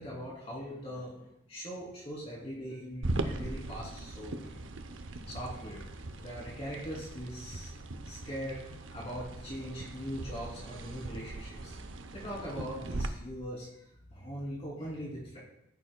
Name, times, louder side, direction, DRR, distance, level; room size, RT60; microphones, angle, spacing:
voice 1, 0.0-4.5 5.3-5.9 6.2-7.7 8.0-11.8 12.1-15.4, equal, 30° left, -6 dB, 3.0 m, -41 dB
sound 1, 3.0-13.1, right 2 dB, 70° right, 0.7 m, -40 dB
15.0 x 8.7 x 2.2 m, 0.83 s
head